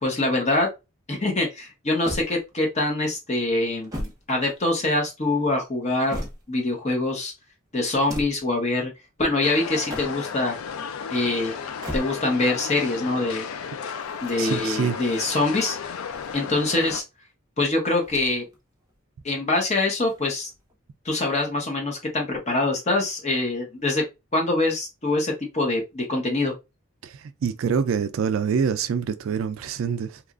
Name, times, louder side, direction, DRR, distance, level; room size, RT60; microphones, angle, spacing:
voice 1, 0.0-0.7 1.1-6.2 6.5-7.3 7.7-8.9 9.2-10.6 11.1-11.6 11.9-13.5 14.2-15.8 16.3-17.0 17.6-18.4 19.2-20.5 21.0-24.0 24.3-26.5, left 2 dB, 35° left, 0.8 m, -24 dB
sound 1, 2.0-2.8 3.6-5.0 5.7-6.7 7.9-8.5 9.7-10.4 11.6-12.5 14.0-15.0 15.9-16.8 18.0-18.6 18.9-19.0 20.0-20.8, equal, 15° right, 0.9 m, -38 dB
sound 2, 9.4-17.0, left 6 dB, 90° left, 0.4 m, -34 dB
voice 2, 14.4-15.1 27.0-30.2, right 6 dB, 75° right, 0.3 m, -26 dB
2.9 x 2.4 x 2.4 m
head